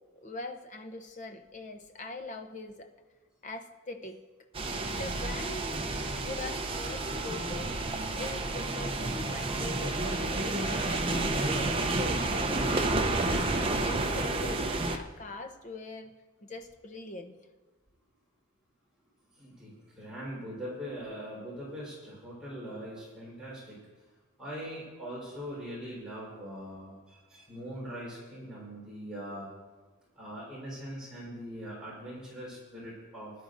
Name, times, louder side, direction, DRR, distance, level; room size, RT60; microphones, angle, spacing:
voice 1, 0.1-2.9 3.4-4.2 5.0-16.1 16.4-17.3, left 2 dB, 35° left, 6 dB, 0.8 m, -43 dB
sound 1, 4.5-15.0, right 2 dB, 25° right, 0.6 m, -30 dB
voice 2, 19.4-23.8 24.4-29.5 30.2-33.3, equal, 5° right, -8 dB, 4.1 m, -41 dB
20.0 x 11.5 x 2.6 m, 1.3 s
head